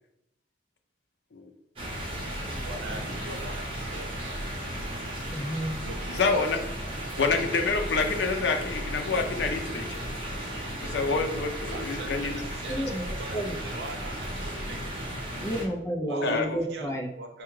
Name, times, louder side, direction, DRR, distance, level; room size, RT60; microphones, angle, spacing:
sound 1, 1.8-15.6, right 1 dB, 30° right, 0.9 m, -35 dB
voice 1, 2.6-3.6 3.9-4.5 5.8-6.4 11.7-14.8 16.1-16.9 17.2-17.4, right 2 dB, 65° right, 2 dB, 0.5 m, -41 dB
voice 2, 5.3-5.9 12.7-13.0 13.3-13.6 15.4-17.1, equal, 15° left, 3 dB, 0.4 m, -31 dB
voice 3, 6.1-6.6 7.2-10.0 10.8-12.4 16.2-16.6, left 4 dB, 70° left, 4 dB, 0.5 m, -27 dB
4.7 x 2.2 x 3.1 m, 0.79 s
head